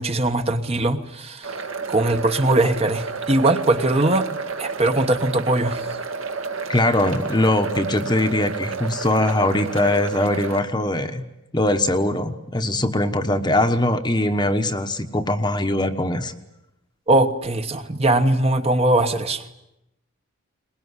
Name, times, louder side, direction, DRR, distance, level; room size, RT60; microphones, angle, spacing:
voice 1, 0.0-1.6 1.9-4.3 4.6-5.9 17.1-19.4, right 2 dB, 25° right, 7 dB, 1.2 m, -20 dB
sound 1, 1.4-10.6, right 4 dB, 65° right, 2.0 m, -31 dB
voice 2, 6.7-11.2 11.5-16.3, left 1 dB, 20° left, 7 dB, 1.1 m, -21 dB
22.5 x 21.0 x 9.7 m, 0.87 s
head